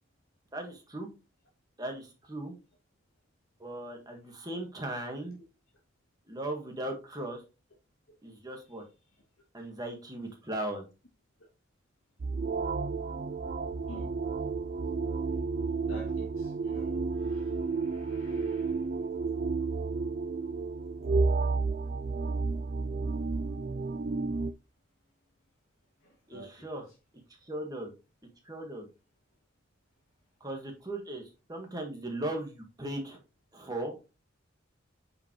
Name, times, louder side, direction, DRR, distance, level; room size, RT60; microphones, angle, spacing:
voice 1, 0.5-1.1 1.8-2.5 3.6-5.4 6.3-7.4 8.2-8.8 9.5-10.8 26.3-26.8 27.4-27.9 28.4-28.9 30.4-31.2 31.5-33.2 33.5-34.0, right 1 dB, 20° right, 1.6 m, -37 dB
sound 1, 12.2-24.5, right 4 dB, 45° right, 0.3 m, -31 dB
voice 2, 15.8-19.4 26.0-26.9, equal, 85° left, 2.3 m, -51 dB
9.5 x 5.0 x 3.1 m
head